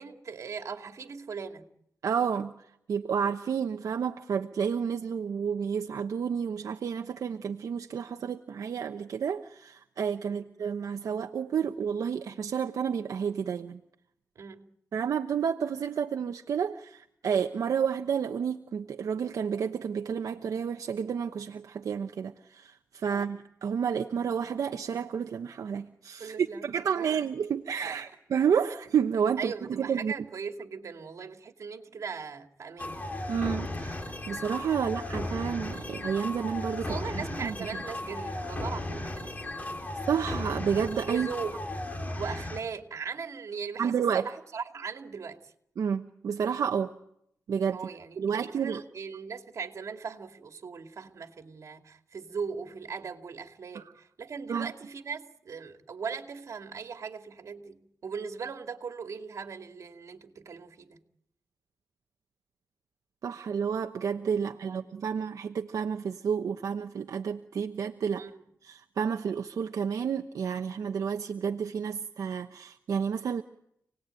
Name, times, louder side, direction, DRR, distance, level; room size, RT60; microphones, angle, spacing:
voice 1, 0.0-1.7 10.3-10.5 14.4-14.7 23.1-23.3 26.2-26.6 26.9-27.2 27.9-28.0 29.4-33.1 34.8-34.9 36.8-39.8 41.1-41.6 42.2-45.5 47.7-61.0 64.6-65.2 68.2-68.4, right 5 dB, 65° right, 5 dB, 2.5 m, -39 dB
voice 2, 2.0-2.5 2.9-13.8 14.9-30.1 33.3-37.5 40.1-41.3 43.8-44.3 45.8-46.9 47.5-47.8 48.2-48.8 53.7-53.9 54.5-54.7 63.2-68.2 68.6-73.4, right 7 dB, 80° right, 5 dB, 1.0 m, -30 dB
sound 1, 32.8-42.6, left 2 dB, 30° left, 3.4 m, -35 dB
28.0 x 19.5 x 9.1 m, 0.76 s
wide cardioid pair, 130°, 6 cm